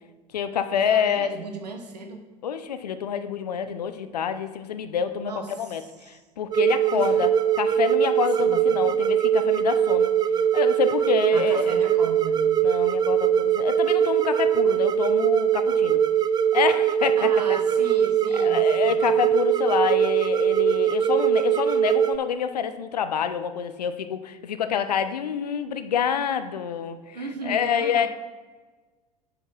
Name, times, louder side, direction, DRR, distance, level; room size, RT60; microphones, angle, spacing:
voice 1, 0.3-1.3 2.4-5.3 5.6-5.8 6.1-7.3 7.6-10.1 10.5-11.7 12.6-16.0 16.5-17.3 18.4-27.2 27.4-28.1, left 8 dB, 80° left, 11 dB, 0.6 m, -27 dB
voice 2, 0.8-2.3 5.2-6.2 6.9-7.2 8.4-8.7 11.3-12.6 17.1-19.1 27.1-28.1, right 4 dB, 85° right, 5 dB, 1.1 m, -36 dB
sound 1, 6.5-22.2, right 9 dB, 20° right, 0.4 m, -21 dB
5.9 x 5.4 x 6.1 m, 1.3 s
figure-of-eight pair, 80°, 20 cm